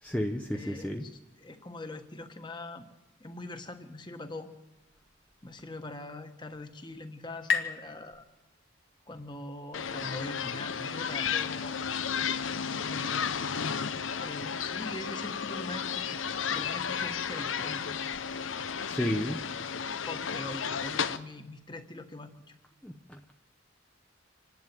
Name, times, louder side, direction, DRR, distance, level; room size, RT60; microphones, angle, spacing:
voice 1, 0.0-1.0 18.9-19.4 22.8-23.3, equal, 5° left, 3 dB, 0.8 m, -32 dB
voice 2, 0.5-2.9 3.2-4.5 5.4-8.2 9.1-11.7 12.5-13.5 14.2-16.2 16.5-17.9 18.9-19.4 19.8-22.6, left 2 dB, 25° left, 8 dB, 1.4 m, -43 dB
sound 1, 6.0-9.4, left 6 dB, 55° left, 2.0 m, -37 dB
sound 2, 9.7-21.2, left 7 dB, 80° left, 0.9 m, -33 dB
26.5 x 11.0 x 9.1 m, 1.0 s
head